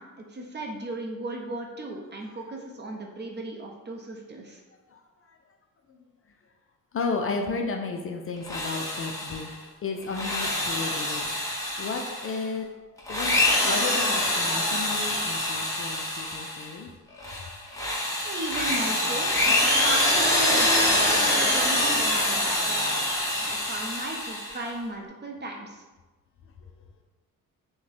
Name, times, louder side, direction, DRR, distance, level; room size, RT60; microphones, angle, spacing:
voice 1, 0.0-4.6 18.2-23.0 23.4-25.8, right 2 dB, 30° right, 1 dB, 0.6 m, -36 dB
voice 2, 4.9-5.4 5.9-6.0 6.9-9.5 9.8-11.3 11.8-12.7 13.1-13.4 13.6-16.9 17.2-17.3, left 4 dB, 40° left, 3 dB, 0.4 m, -33 dB
Drill, 8.4-9.5 10.0-12.4 13.0-16.7 17.2-24.6, left 1 dB, 10° left, 0.8 m, -25 dB
6.1 x 2.1 x 3.3 m, 1.2 s
wide cardioid pair, 130°, 34 cm